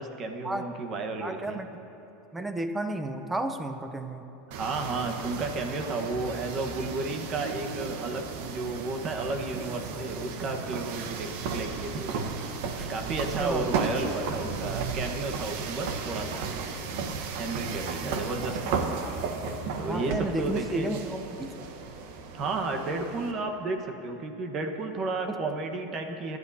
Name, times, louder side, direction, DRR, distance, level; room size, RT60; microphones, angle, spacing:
voice 1, 0.0-1.6 4.5-12.3 12.9-16.5 17.3-18.9 19.7-21.0 22.3-26.4, right 3 dB, 35° right, 4 dB, 1.3 m, -33 dB
voice 2, 1.2-1.7 2.3-4.2 12.8-12.9 13.4-13.6 18.0-18.2 19.9-21.5 25.3-25.4, right 1 dB, 10° right, 7 dB, 0.8 m, -32 dB
sound 1, 4.5-23.3, right 5 dB, 65° right, 1.1 m, -34 dB
sound 2, 8.7-15.0, left 2 dB, 35° left, 1.0 m, -49 dB
24.0 x 11.0 x 2.8 m, 2.9 s
supercardioid pair, 135°, 0 cm